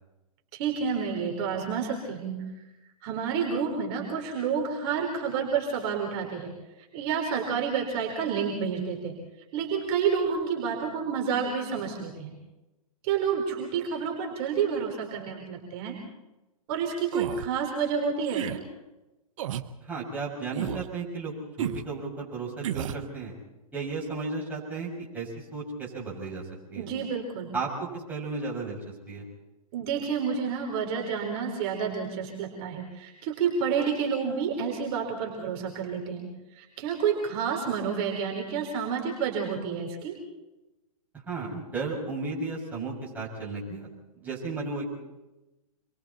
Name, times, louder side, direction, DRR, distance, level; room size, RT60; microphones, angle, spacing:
voice 1, 0.5-2.4 3.0-6.5 6.9-9.1 9.5-12.3 13.0-16.0 16.7-18.6 26.8-27.5 29.7-36.3 36.5-40.1, right 6 dB, 45° right, 0 dB, 4.3 m, -29 dB
sound 1, 17.1-17.5 18.3-18.6 19.4-19.7 20.5-20.9 21.6-21.8 22.6-23.0, right 11 dB, 60° right, 1.2 m, -32 dB
voice 2, 19.8-23.3 23.7-26.4 26.7-26.9 27.5-28.8 29.1-29.2 41.3-43.9 44.2-44.9, right 3 dB, 10° right, -4 dB, 6.9 m, -34 dB
27.5 x 23.0 x 4.4 m, 1.0 s
hypercardioid pair, 135°, 19 cm